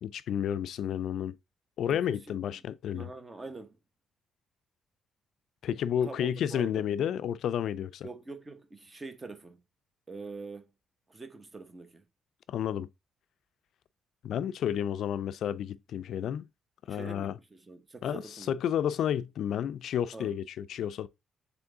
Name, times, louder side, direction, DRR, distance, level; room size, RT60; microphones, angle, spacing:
voice 1, 0.0-1.4 1.8-3.1 5.6-8.1 12.5-12.9 14.2-16.5 16.9-17.3 18.0-18.2 18.5-21.1, left 9 dB, 70° left, 0.3 m, -31 dB
voice 2, 1.9-2.5 2.9-3.8 6.0-6.9 8.0-9.6 10.1-10.7 11.1-12.0 16.9-18.5 20.1-20.4, right 3 dB, 25° right, 0.9 m, -44 dB
3.6 x 3.5 x 3.8 m
cardioid pair, 90°, 0 cm